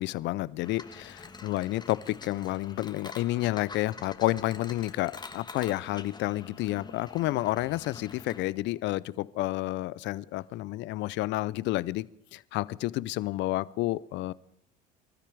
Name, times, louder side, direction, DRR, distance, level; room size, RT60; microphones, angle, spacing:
voice 1, 0.0-14.3, left 17 dB, 60° left, 20 dB, 0.6 m, -30 dB
sound 1, 0.6-8.4, left 4 dB, 20° left, 1.5 m, -46 dB
25.5 x 13.0 x 3.5 m, 0.75 s
hypercardioid pair, 70°, 21 cm